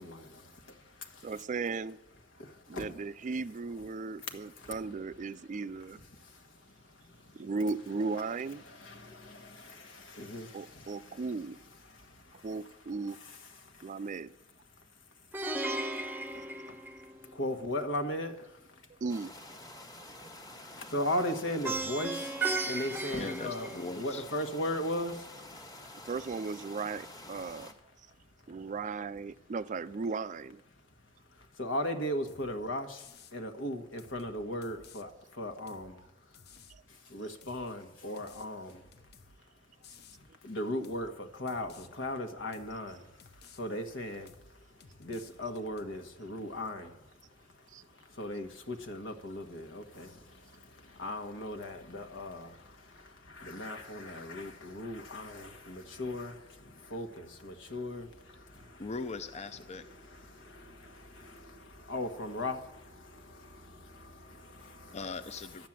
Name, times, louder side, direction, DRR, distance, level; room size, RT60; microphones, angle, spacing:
voice 1, 0.0-1.4 2.3-3.0 3.8-4.8 5.3-7.5 8.5-14.2 14.7-19.0 19.7-23.7 23.9-26.1 28.1-28.7 30.8-58.9 59.7-65.0 65.3-65.4, left 1 dB, 75° left, 1.5 m, -39 dB
voice 2, 1.2-2.0 2.7-6.0 7.3-8.6 10.5-11.6 12.4-13.2 13.8-14.3 19.0-19.3 26.1-27.7 28.5-30.6 36.7-36.8 47.7-47.8, right 4 dB, 40° right, 0.4 m, -36 dB
Plucked string instrument, 15.3-17.5 21.6-24.2, right 3 dB, 10° right, 0.8 m, -35 dB
sound 1, 19.1-27.7, left 1 dB, 20° left, 1.4 m, -49 dB
voice 3, 23.2-24.2 58.8-59.8 64.9-65.7, left 3 dB, 35° left, 0.5 m, -40 dB
sound 2, 32.3-32.5 33.0-33.4 34.0-35.0 35.7-35.9 36.3-36.8 37.4-37.7 38.2-39.4 39.8-40.2 40.8-41.1 41.5-41.9 42.5-42.8 43.2-43.6 44.3-44.5 44.8-46.0, left 5 dB, 55° left, 0.8 m, -56 dB
12.5 x 9.3 x 7.4 m
head